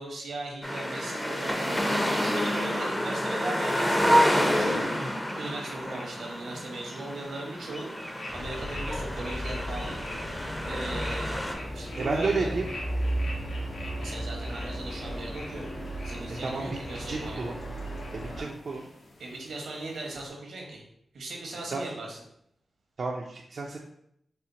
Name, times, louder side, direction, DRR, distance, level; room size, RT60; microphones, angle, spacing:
voice 1, 0.0-10.0 10.3-12.5 14.0-15.7 16.0-17.5 18.4-18.5 19.2-20.8 21.1-22.2, right 2 dB, 85° right, -1 dB, 1.0 m, -38 dB
sound 1, 0.6-11.5, equal, 10° left, 0.6 m, -28 dB
sound 2, 4.3-20.3, left 1 dB, 70° left, 1.0 m, -47 dB
sound 3, 8.3-18.4, equal, 45° left, 1.5 m, -35 dB
voice 2, 12.0-12.7 16.4-16.7 17.1-17.6 18.1-18.9 21.7-21.8 23.0-23.8, right 3 dB, 60° right, -1 dB, 0.4 m, -31 dB
4.3 x 2.1 x 3.9 m, 0.73 s
cardioid pair, 60°, 0 cm